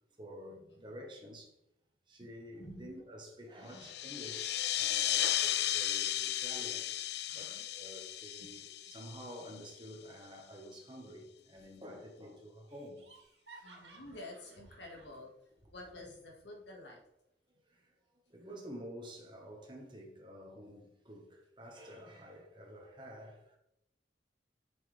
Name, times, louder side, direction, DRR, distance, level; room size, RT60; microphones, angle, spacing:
voice 1, 0.1-1.5 2.1-6.8 7.3-13.1 13.5-13.7 17.7-17.9 18.3-23.6, equal, 25° right, 1.5 m, -50 dB
voice 2, 2.6-2.9 3.6-3.9 7.3-7.6 8.4-8.6 11.5-11.7 13.6-17.0, left 1 dB, 85° left, 2.1 m, -51 dB
sound 1, 3.7-9.9, left 12 dB, 65° left, 0.4 m, -35 dB
Laughter, 11.4-11.9 12.2-12.3 12.7-15.2, right 3 dB, 85° right, 2.1 m, -58 dB
8.4 x 6.5 x 3.5 m
head